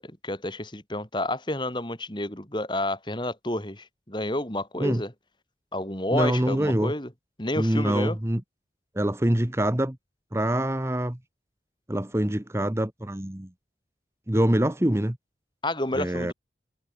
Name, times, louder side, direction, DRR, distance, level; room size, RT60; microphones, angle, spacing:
voice 1, 0.0-5.1 5.7-7.1 7.4-8.2 15.6-16.3, left 1 dB, 25° left, 3.9 m, -30 dB
voice 2, 6.1-6.9 7.6-8.4 9.0-10.0 10.3-11.2 11.9-13.5 14.3-15.2 16.0-16.3, right 1 dB, 15° right, 1.0 m, -25 dB
head